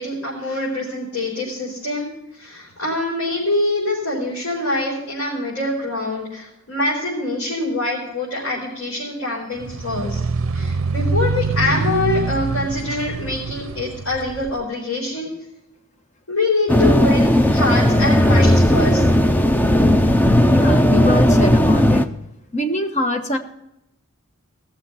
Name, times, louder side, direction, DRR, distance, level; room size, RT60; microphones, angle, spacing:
voice 1, 0.0-2.1 2.4-10.2 10.5-15.3 16.3-19.0, left 2 dB, 85° left, -7 dB, 4.5 m, -24 dB
sound 1, 9.6-14.6, right 3 dB, 70° right, 0.5 m, -25 dB
sound 2, 16.7-22.1, equal, 10° left, 0.5 m, -15 dB
voice 2, 20.3-22.1 22.5-23.4, left 1 dB, 35° left, 5 dB, 1.2 m, -24 dB
17.0 x 6.9 x 5.6 m, 0.84 s
head